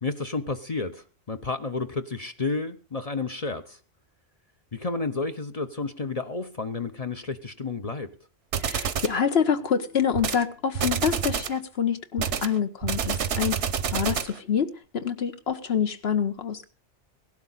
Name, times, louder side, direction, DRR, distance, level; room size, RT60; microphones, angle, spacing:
voice 1, 0.0-3.8 4.7-8.1, left 3 dB, 35° left, 0.8 m, -31 dB
sound 1, 8.5-9.2 10.1-10.4 10.7-11.6 12.2-14.4, right 7 dB, 80° right, 1.2 m, -28 dB
voice 2, 8.6-13.6 13.9-16.6, left 7 dB, 60° left, 1.4 m, -26 dB
17.5 x 12.0 x 4.0 m
omnidirectional pair, 1.2 m